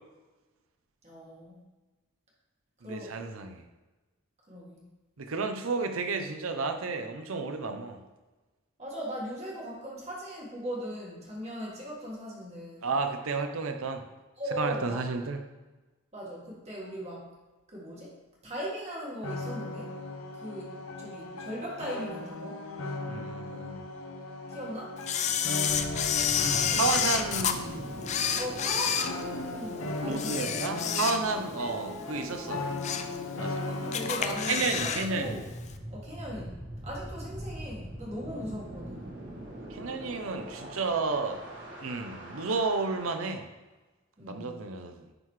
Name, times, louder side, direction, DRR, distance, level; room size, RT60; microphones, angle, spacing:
voice 1, 1.0-1.6 2.8-3.1 4.5-4.8 8.8-12.9 14.4-15.0 16.1-17.3 17.7-18.2 18.4-20.0 20.3-20.7 21.0-22.6 24.5-24.9 26.3-26.9 28.4-30.9 33.3-35.4 35.9-39.1 44.2-44.6, equal, 30° right, -5 dB, 1.6 m, -39 dB
voice 2, 2.8-3.6 5.2-8.0 12.8-14.1 14.5-15.4 23.1-23.8 26.8-27.9 30.0-32.7 33.4-33.7 34.5-35.4 39.7-41.4 41.8-43.5 44.2-45.1, right 4 dB, 85° right, 6 dB, 0.7 m, -32 dB
sound 1, 19.2-34.7, left 2 dB, 85° left, 0.7 m, -37 dB
Camera, 25.1-27.6 28.0-29.7 30.1-31.5 31.9-32.0 32.5-33.2 33.5-33.6 33.9-35.1 35.3-35.4, left 8 dB, 35° left, 0.3 m, -29 dB
sound 2, 25.7-43.2, right 1 dB, 60° right, 1.7 m, -43 dB
9.8 x 3.9 x 3.2 m, 1.2 s
head